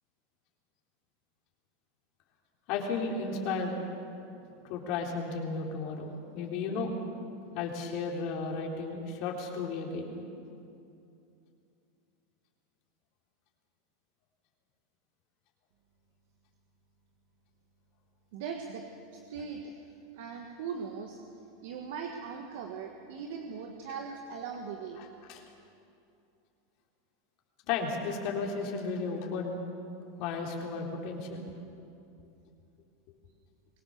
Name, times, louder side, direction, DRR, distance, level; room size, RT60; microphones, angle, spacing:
voice 1, 2.7-3.9 4.6-6.9 7.5-10.2 25.0-25.4 27.6-29.6 30.2-31.5, left 4 dB, 55° left, 0 dB, 3.9 m, -34 dB
voice 2, 18.3-18.9 19.1-19.7 20.1-21.2 21.6-25.0, right 6 dB, 70° right, 3 dB, 1.7 m, -39 dB
23.0 x 19.0 x 6.9 m, 2.6 s
hypercardioid pair, 115°, 0 cm